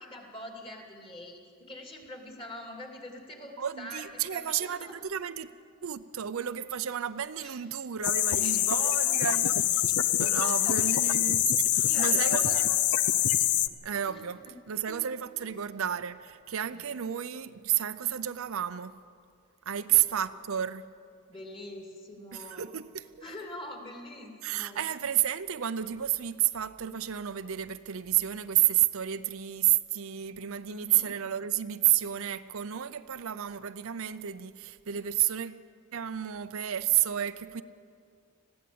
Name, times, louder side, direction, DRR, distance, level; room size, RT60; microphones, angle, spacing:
voice 1, 0.0-1.4 1.7-5.0 7.4-7.6 8.4-9.4 9.8-11.1 11.8-13.1 14.1-14.5 14.9-15.0 16.7-16.8 19.8-20.3 21.3-22.7 23.2-24.9 30.7-31.1, left 1 dB, 25° left, 2 dB, 2.6 m, -44 dB
voice 2, 3.6-5.5 5.8-9.5 10.2-12.8 13.8-14.4 14.7-19.0 19.7-20.9 22.3-23.1 24.4-35.6 35.9-37.6, right 11 dB, 65° right, 12 dB, 0.5 m, -31 dB
sound 1, 8.0-13.7, left 12 dB, 85° left, 0.6 m, -25 dB
20.0 x 15.5 x 8.6 m, 2.3 s
head